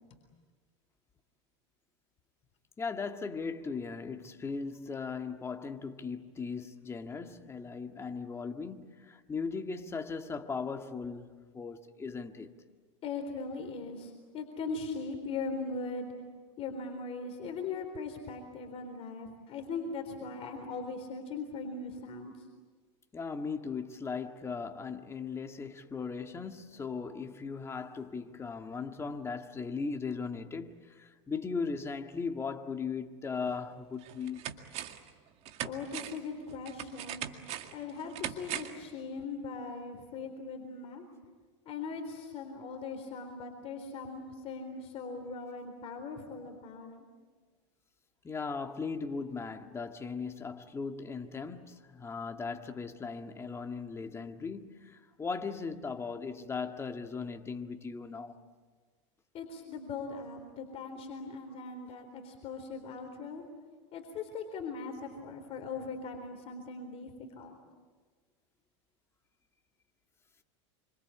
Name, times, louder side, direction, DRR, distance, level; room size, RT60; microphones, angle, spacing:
voice 1, 2.8-12.5 23.1-34.5 48.2-58.4, left 5 dB, 15° left, 1.8 m, -38 dB
voice 2, 13.0-16.1 16.6-22.3 35.6-37.2 37.7-41.0 41.7-47.0 59.3-63.5 63.9-67.6, left 4 dB, 40° left, 3.9 m, -40 dB
sound 1, 33.5-33.6 34.0-35.1 35.4-38.9 39.2-39.3, right 10 dB, 45° right, 2.1 m, -40 dB
27.0 x 25.5 x 8.6 m
supercardioid pair, 125°, 16 cm